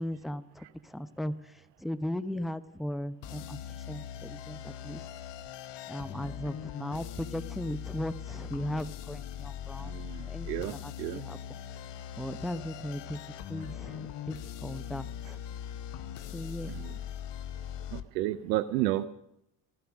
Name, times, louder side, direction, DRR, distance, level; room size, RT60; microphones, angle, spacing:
voice 1, 0.0-5.0 5.9-9.9 10.2-11.4 12.2-13.2 13.5-15.4 16.2-16.8, left 1 dB, ahead, 14 dB, 0.7 m, -37 dB
sound 1, 3.2-18.0, left 10 dB, 60° left, 0.9 m, -41 dB
voice 2, 9.8-11.2 16.7-17.0 17.9-19.1, right 15 dB, 85° right, 11 dB, 0.6 m, -32 dB
15.0 x 12.5 x 6.1 m, 0.83 s
hypercardioid pair, 50°, 49 cm